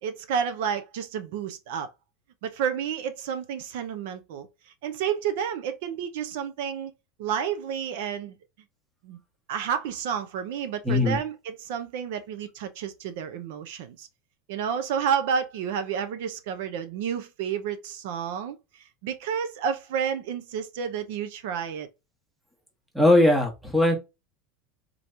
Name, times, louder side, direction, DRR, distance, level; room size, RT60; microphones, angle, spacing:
voice 1, 0.0-1.9 2.4-4.5 4.8-6.9 7.2-8.4 9.0-9.2 9.5-14.1 14.5-21.9, right 7 dB, 65° right, 0.6 m, -30 dB
voice 2, 10.8-11.2 22.9-24.0, left 1 dB, 5° right, 1.0 m, -19 dB
3.8 x 3.0 x 3.2 m
supercardioid pair, 170°, 0 cm